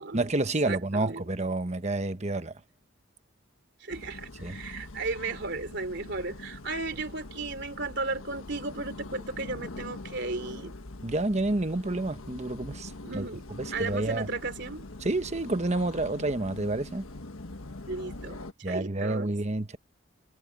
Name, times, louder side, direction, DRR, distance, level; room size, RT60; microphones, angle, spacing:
voice 1, 0.1-2.5 4.4-4.6 11.0-13.2 13.5-14.3 15.0-17.1 18.6-19.8, right 2 dB, 35° right, 1.1 m, -29 dB
voice 2, 0.6-1.3 3.8-10.7 13.0-13.4 13.7-14.8 17.9-19.3, right 3 dB, 55° right, 3.2 m, -35 dB
sound 1, 3.9-18.5, left 2 dB, 90° left, 1.4 m, -43 dB
head